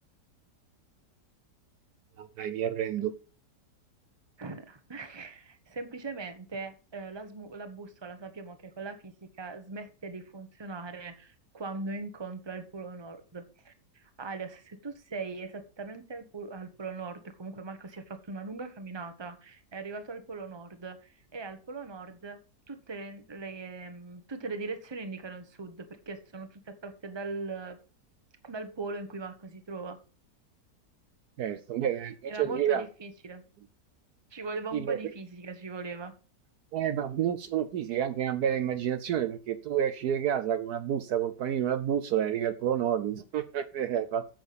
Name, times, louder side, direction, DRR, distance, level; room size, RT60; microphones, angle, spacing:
voice 1, 2.2-3.1 31.4-32.8 34.7-35.0 36.7-44.2, right 9 dB, 70° right, 11 dB, 1.1 m, -29 dB
voice 2, 4.4-22.4 22.7-27.8 28.4-30.0 32.2-33.4 34.3-36.1, right 3 dB, 15° right, 8 dB, 1.1 m, -40 dB
9.0 x 7.6 x 5.1 m, 0.35 s
omnidirectional pair, 1.9 m